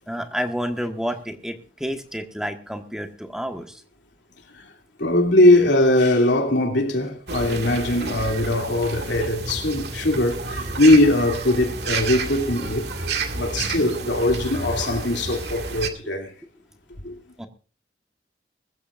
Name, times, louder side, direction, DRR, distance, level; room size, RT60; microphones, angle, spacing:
voice 1, 0.1-3.8 17.4-17.5, equal, 5° right, 1.4 m, -30 dB
voice 2, 5.0-12.9 13.3-16.3 17.0-17.2, left 1 dB, 85° left, 2.8 m, -20 dB
sound 1, 7.3-15.9, right 3 dB, 65° right, 2.1 m, -30 dB
21.5 x 14.0 x 2.5 m
head